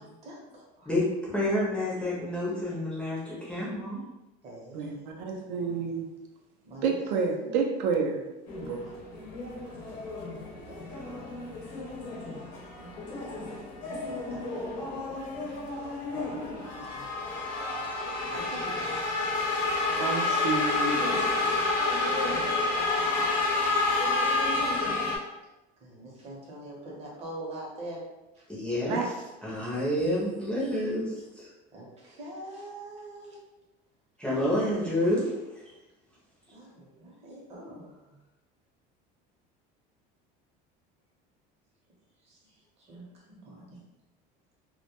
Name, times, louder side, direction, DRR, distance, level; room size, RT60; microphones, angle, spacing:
voice 1, 0.0-0.9 3.4-3.5 4.4-6.0 6.6-7.8 8.8-8.9 9.7-9.8 10.7-11.5 12.8-17.5 18.3-20.4 21.4-21.7 25.8-28.0 28.3-28.4 31.7-33.4 34.3-34.5 36.5-38.1 42.2-42.4 42.8-43.8, right 1 dB, 30° right, -3 dB, 0.7 m, -46 dB
voice 2, 0.9-4.0 28.5-29.1 29.4-31.5 34.2-35.4, left 1 dB, 5° left, -8 dB, 0.4 m, -29 dB
voice 3, 4.7-6.0 6.8-8.2 8.6-8.8 20.0-21.0 28.9-29.1, right 5 dB, 80° right, 1 dB, 0.5 m, -29 dB
sound 1, 8.5-25.2, left 3 dB, 90° left, 0.7 m, -30 dB
2.1 x 2.1 x 2.8 m, 1.0 s
cardioid pair, 170°, 20 cm